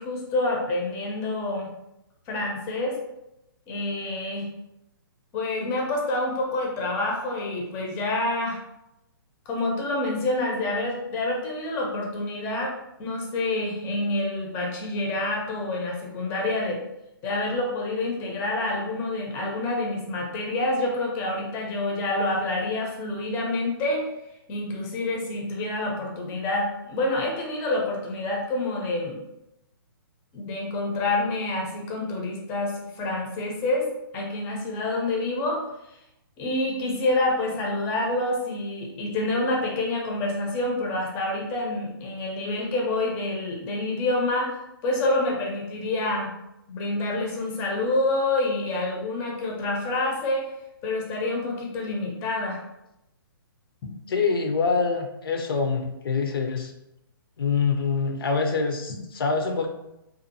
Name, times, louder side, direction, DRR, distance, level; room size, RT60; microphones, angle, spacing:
voice 1, 0.0-1.7 2.3-3.0 3.7-4.5 5.3-8.6 9.5-12.7 13.0-16.8 17.2-24.1 24.5-29.2 30.3-33.9 34.1-35.6 35.9-36.0 36.4-46.3 46.7-50.5 50.8-52.6, left 2 dB, 20° left, -1 dB, 0.5 m, -27 dB
voice 2, 54.1-56.7 57.4-59.7, left 5 dB, 75° left, 5 dB, 0.5 m, -25 dB
2.6 x 2.4 x 2.6 m, 0.88 s
hypercardioid pair, 150°, 12 cm